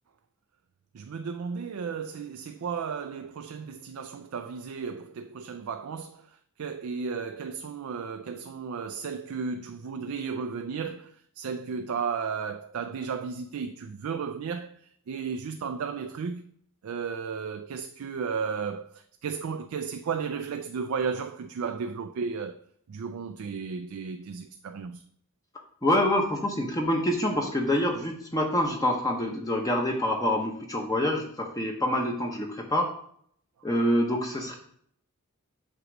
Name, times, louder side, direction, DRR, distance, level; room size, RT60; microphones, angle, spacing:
voice 1, 0.9-6.2 6.6-14.8 15.1-16.4 16.8-22.6 22.9-25.0, right 5 dB, 75° right, 0.4 m, -34 dB
voice 2, 25.8-32.9 33.6-34.6, left 1 dB, 15° left, 0.8 m, -26 dB
7.9 x 3.0 x 6.1 m
head